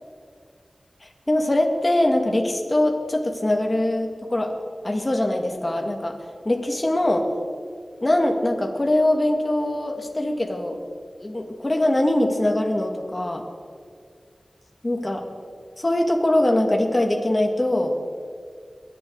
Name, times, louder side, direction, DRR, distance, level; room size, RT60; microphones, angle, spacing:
voice 1, 1.3-4.5 4.8-6.1 6.4-7.3 8.0-10.8 11.2-13.4 14.8-15.2 15.8-17.9, left 1 dB, 35° left, 2 dB, 2.2 m, -22 dB
23.5 x 11.0 x 4.1 m, 2.1 s
wide cardioid pair, 45°, 0 cm